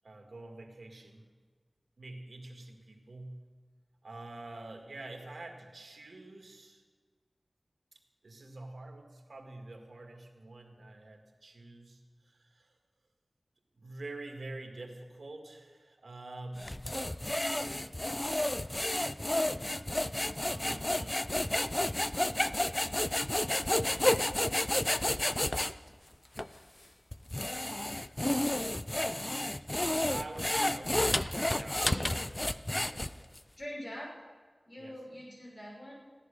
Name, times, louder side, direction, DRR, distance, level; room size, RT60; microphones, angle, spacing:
voice 1, 0.0-1.2 2.0-3.4 4.0-6.8 7.9-12.8 13.7-16.8 20.4-21.2 29.4-29.8 30.0-31.8 32.3-33.3 34.8-35.0, right 2 dB, 85° right, 3 dB, 1.9 m, -47 dB
sound 1, 16.6-25.7 26.4-26.5 27.1-33.4, left 1 dB, 25° left, 0.4 m, -31 dB
voice 2, 30.8-31.1 31.8-32.1 33.6-34.1 34.6-35.9, equal, 50° left, -4 dB, 5.8 m, -43 dB
15.5 x 11.0 x 6.6 m, 1.5 s
wide cardioid pair, 60°, 0 cm